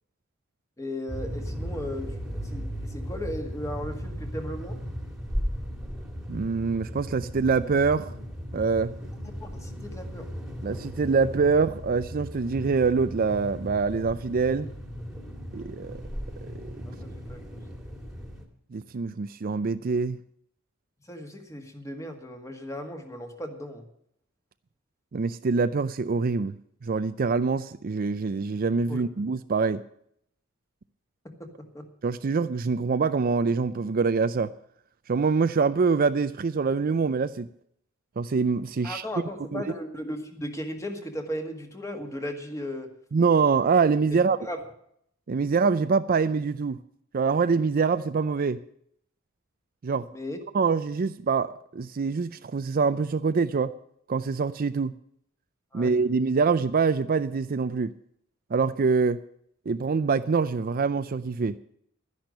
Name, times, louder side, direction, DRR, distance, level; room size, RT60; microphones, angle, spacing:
voice 1, 0.8-4.8 9.4-10.3 16.9-17.8 21.1-23.8 28.9-29.0 31.2-31.9 38.8-42.9 44.1-44.6 50.1-50.4 55.7-55.9, left 1 dB, 15° left, 5 dB, 1.8 m, -36 dB
sound 1, 1.1-18.5, equal, ahead, 2.0 m, -36 dB
voice 2, 6.3-8.1 8.5-8.9 10.6-14.7 15.5-16.0 18.7-20.2 25.1-26.6 26.8-29.8 32.0-34.5 35.1-37.5 38.2-39.0 39.5-39.7 43.1-44.4 45.3-46.8 47.1-48.6 49.8-50.1 50.5-53.7 54.1-54.9 55.7-57.9 58.5-59.2 59.7-61.6, right 5 dB, 45° right, 12 dB, 0.4 m, -25 dB
12.0 x 10.5 x 6.5 m, 0.69 s
head